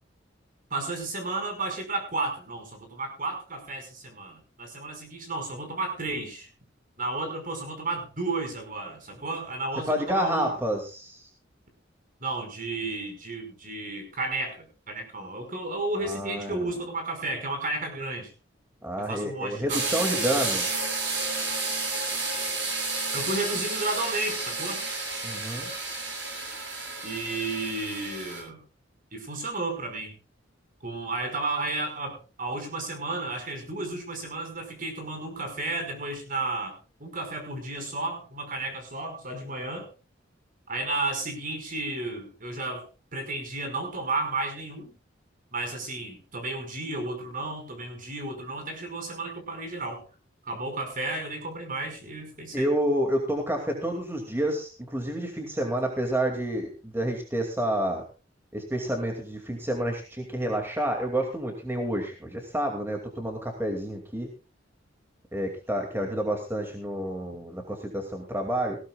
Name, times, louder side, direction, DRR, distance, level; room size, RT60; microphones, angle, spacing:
voice 1, 0.7-6.5 7.0-10.5 12.2-18.3 19.0-19.8 23.1-24.8 27.0-28.6 29.1-30.1 30.8-39.9 40.7-42.9 43.1-44.9 45.5-50.0 50.4-52.7 66.0-66.1, right 2 dB, 45° right, 5 dB, 5.5 m, -33 dB
voice 2, 9.9-11.2 16.0-16.7 18.8-20.8 25.2-25.7 52.5-58.0 58.5-64.3 65.3-68.8, right 1 dB, 15° right, 2 dB, 2.5 m, -29 dB
sound 1, 19.7-28.4, right 3 dB, 70° right, 6.8 m, -31 dB
19.5 x 17.0 x 2.4 m, 0.32 s
head